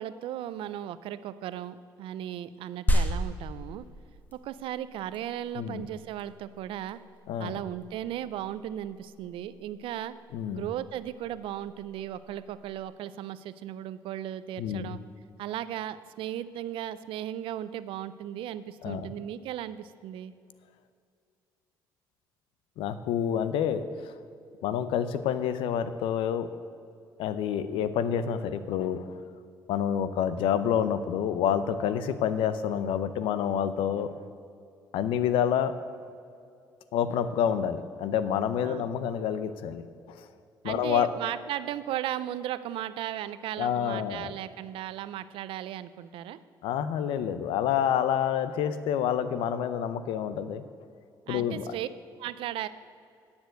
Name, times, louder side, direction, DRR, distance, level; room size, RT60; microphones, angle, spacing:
voice 1, 0.0-3.9 4.3-7.0 7.4-10.2 10.5-15.0 15.4-20.3 38.6-38.9 40.6-46.4 51.3-51.9 52.2-52.7, right 11 dB, 80° right, 15 dB, 0.5 m, -36 dB
sound 1, 2.9-12.9, equal, 20° left, 1.6 m, -34 dB
voice 2, 5.6-5.9 7.3-7.6 10.3-10.6 14.6-15.0 18.8-19.1 22.8-24.1 24.6-26.5 27.2-29.2 29.7-34.2 34.9-35.7 36.9-39.8 40.1-40.2 40.6-41.1 43.6-44.3 46.6-50.6 51.3-51.7, left 9 dB, 85° left, 13 dB, 0.7 m, -28 dB
10.5 x 7.1 x 7.7 m, 2.5 s
cardioid pair, 90°, 9 cm